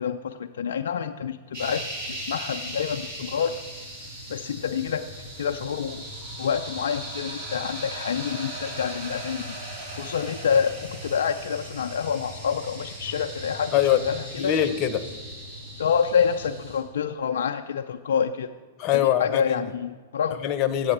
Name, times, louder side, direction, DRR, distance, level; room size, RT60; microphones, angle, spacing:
voice 1, 0.0-3.6 4.3-6.0 6.4-9.5 10.0-14.5 15.8-18.5 18.9-20.4, left 7 dB, 70° left, 5 dB, 0.4 m, -27 dB
sound 1, 1.5-16.8, right 1 dB, 70° right, 4.0 m, -38 dB
sound 2, 9.0-15.3, left 3 dB, 85° right, 1.6 m, -50 dB
voice 2, 14.4-15.0 18.8-19.6 20.4-20.9, left 11 dB, 40° left, 11 dB, 0.7 m, -23 dB
8.6 x 7.7 x 7.2 m, 1.4 s
hypercardioid pair, 105°, 0 cm